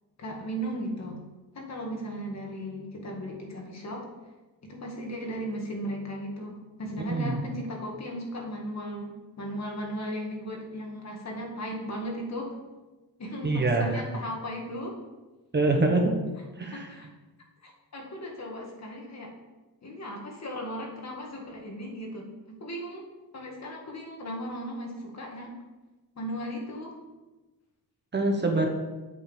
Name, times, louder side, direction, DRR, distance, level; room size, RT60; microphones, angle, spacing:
voice 1, 0.2-1.2 1.5-4.1 4.6-9.1 9.4-12.5 13.2-15.0 16.6-17.1 17.6-19.3 19.8-23.0 23.3-25.6 26.2-27.0 28.2-28.7, equal, 50° left, 0 dB, 2.0 m, -36 dB
voice 2, 13.4-13.9 15.5-16.1 16.6-16.9 28.1-28.7, right 2 dB, 30° right, 3 dB, 1.1 m, -24 dB
8.3 x 5.5 x 7.1 m, 1.1 s
wide cardioid pair, 165°, 35 cm